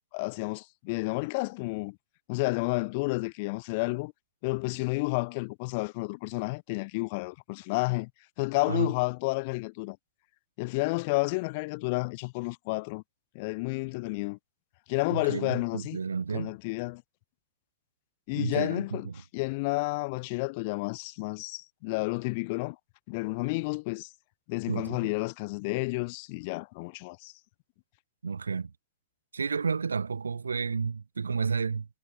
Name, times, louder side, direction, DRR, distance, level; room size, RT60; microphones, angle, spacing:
voice 1, 0.1-2.0 2.3-4.1 4.4-8.1 8.4-10.0 10.6-13.0 13.3-14.4 14.9-16.0 16.3-17.0 18.3-19.1 19.3-22.8 23.1-24.1 24.5-27.3, left 27 dB, 50° left, 4.0 m, -31 dB
voice 2, 15.1-16.6 18.4-19.2 24.7-25.1 28.2-28.7 29.3-31.9, right 5 dB, 75° right, 4.3 m, -31 dB
figure-of-eight pair, 90°, 0 cm